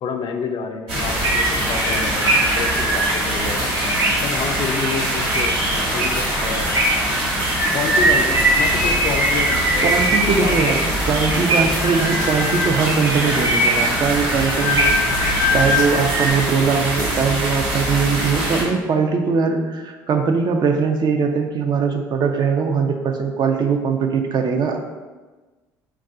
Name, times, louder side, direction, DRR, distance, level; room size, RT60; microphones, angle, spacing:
voice 1, 0.0-3.7 4.2-6.8 7.7-10.0 10.3-10.9, left 5 dB, 55° left, 5 dB, 0.3 m, -28 dB
sound 1, 0.9-18.6, right 1 dB, 75° right, 1.1 m, -24 dB
sound 2, 1.2-16.3, right 1 dB, 30° right, 0.8 m, -22 dB
voice 2, 9.8-10.8 11.1-15.0 15.5-24.8, right 5 dB, 45° right, 5 dB, 0.4 m, -21 dB
2.3 x 2.3 x 3.8 m, 1.3 s
hypercardioid pair, 65°, 10 cm